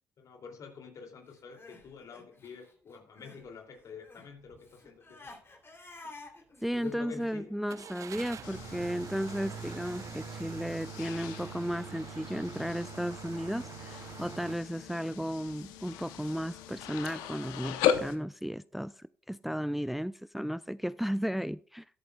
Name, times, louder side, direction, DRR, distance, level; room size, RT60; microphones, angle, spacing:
voice 1, 0.2-5.3 6.7-7.6, left 6 dB, 65° left, 2.7 m, -47 dB
Crying sobbing, 1.3-3.5 3.7-8.8, left 3 dB, 40° left, 3.0 m, -52 dB
sound 1, 4.4-4.6 5.1-5.2 7.7-14.5, right 9 dB, 60° right, 0.8 m, -45 dB
voice 2, 6.6-21.8, equal, ahead, 0.3 m, -34 dB
sound 2, 8.4-18.2, left 9 dB, 90° left, 0.8 m, -37 dB
13.5 x 11.5 x 2.3 m
supercardioid pair, 55°, 6 cm